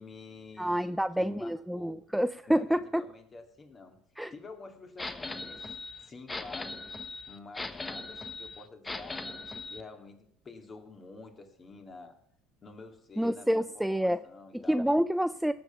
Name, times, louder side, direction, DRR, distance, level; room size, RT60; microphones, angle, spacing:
voice 1, 0.0-2.0 2.5-4.0 4.3-5.7 6.0-6.8 7.3-12.2 12.6-14.9, left 3 dB, 35° left, 5 dB, 2.6 m, -49 dB
voice 2, 0.6-3.0 4.2-4.3 13.2-14.2 14.5-15.5, equal, 5° right, 12 dB, 0.5 m, -28 dB
sound 1, 5.0-9.8, left 3 dB, 20° left, 1.0 m, -39 dB
18.5 x 7.1 x 5.8 m, 0.72 s
hypercardioid pair, 70°, 0 cm